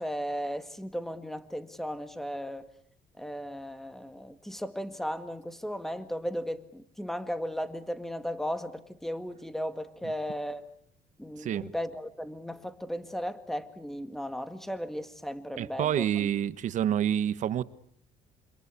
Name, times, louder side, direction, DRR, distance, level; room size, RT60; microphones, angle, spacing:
voice 1, 0.0-2.7 3.2-10.7 11.2-16.1, equal, ahead, 1.9 m, -36 dB
voice 2, 11.4-11.7 15.6-17.6, right 10 dB, 55° right, 1.3 m, -28 dB
27.0 x 26.5 x 8.3 m
cardioid pair, 135°, 16 cm